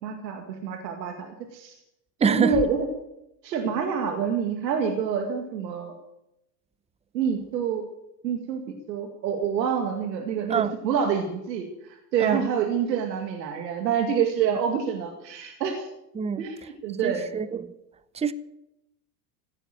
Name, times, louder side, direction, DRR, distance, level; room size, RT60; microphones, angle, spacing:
voice 1, 0.0-1.8 2.2-2.9 3.4-5.9 7.1-7.8 8.2-8.6 8.9-15.9 16.4-16.6 16.8-17.3, right 7 dB, 80° right, 2.3 m, -27 dB
voice 2, 2.2-2.6 10.5-10.7 12.2-12.5 16.2-16.5 17.0-17.7 18.1-18.3, right 6 dB, 15° right, 0.8 m, -25 dB
16.5 x 9.6 x 7.7 m
hypercardioid pair, 100°, 50 cm